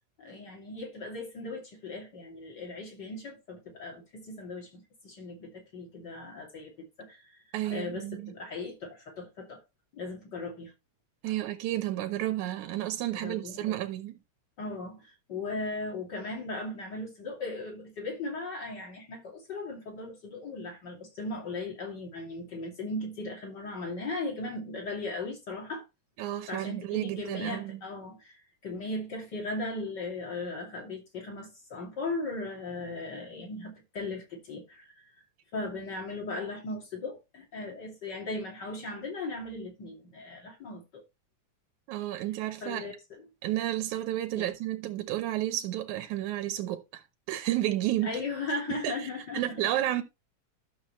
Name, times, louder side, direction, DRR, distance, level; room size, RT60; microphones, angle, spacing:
voice 1, 0.2-6.7 7.0-9.6 9.9-10.7 13.1-13.8 14.6-25.8 26.5-35.1 35.5-40.8 42.6-43.2 44.3-44.5 48.0-49.6, left 2 dB, 35° left, 3.0 m, -37 dB
voice 2, 7.5-8.3 11.2-14.2 26.2-27.7 41.9-42.9 43.4-47.0 47.3-48.2 48.7-49.1 49.3-50.0, right 14 dB, 85° right, 2.2 m, -31 dB
12.0 x 6.7 x 3.1 m
omnidirectional pair, 3.4 m